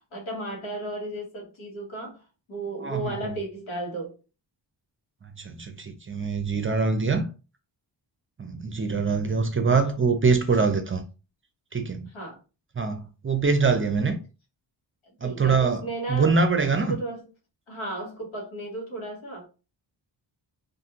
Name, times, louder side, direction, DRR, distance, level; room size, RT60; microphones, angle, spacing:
voice 1, 0.0-2.2 2.5-4.2 12.1-12.4 15.2-16.3 16.9-17.2 17.7-19.5, right 2 dB, 85° left, 1.3 m, -34 dB
voice 2, 2.8-3.3 5.4-7.3 8.4-11.0 11.7-12.1 12.8-14.2 15.2-17.0, right 4 dB, 30° right, 0.5 m, -24 dB
2.7 x 2.6 x 2.5 m
cardioid pair, 75°, 46 cm